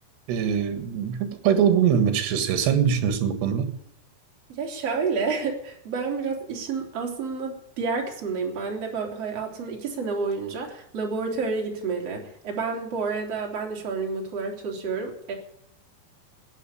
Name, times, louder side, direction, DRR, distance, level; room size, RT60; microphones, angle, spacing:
voice 1, 0.3-3.7, right 8 dB, 70° right, 3.7 m, -22 dB
voice 2, 4.5-15.4, right 4 dB, 35° right, 3.7 m, -29 dB
15.0 x 9.3 x 8.4 m
omnidirectional pair, 5.2 m